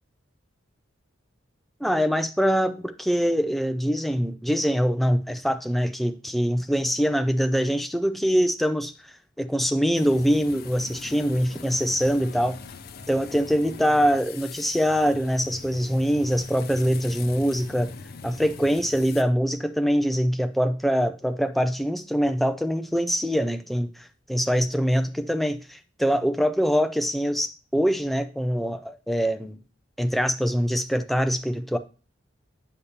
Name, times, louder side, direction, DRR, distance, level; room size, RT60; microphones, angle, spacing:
voice 1, 1.8-12.5 13.1-17.9 18.2-29.6 30.0-31.8, equal, ahead, 0.4 m, -24 dB
sound 1, 9.9-19.2, left 5 dB, 50° left, 0.6 m, -42 dB
8.2 x 6.6 x 2.8 m
head